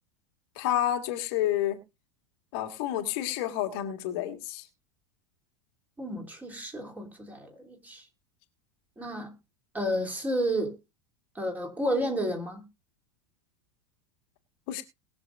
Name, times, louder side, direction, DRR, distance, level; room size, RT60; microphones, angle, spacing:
voice 1, 0.5-1.8 2.5-4.7 14.7-14.8, left 12 dB, 50° left, 1.6 m, -29 dB
voice 2, 6.0-8.0 9.0-9.3 9.7-10.7 11.3-12.6, equal, 10° right, 3.3 m, -31 dB
21.0 x 7.0 x 2.5 m
figure-of-eight pair, 85°, 15 cm